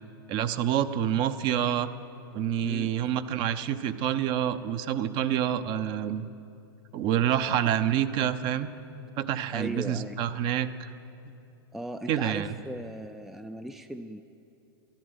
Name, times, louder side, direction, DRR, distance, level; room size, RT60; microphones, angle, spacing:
voice 1, 0.3-1.9 2.3-6.3 6.9-8.7 9.2-10.9 12.1-12.5, right 10 dB, 35° right, 12 dB, 0.7 m, -27 dB
voice 2, 2.6-3.1 7.5-7.6 9.5-10.2 11.7-14.2, right 1 dB, ahead, 8 dB, 0.3 m, -38 dB
13.0 x 11.5 x 9.5 m, 2.7 s
hypercardioid pair, 130°, 13 cm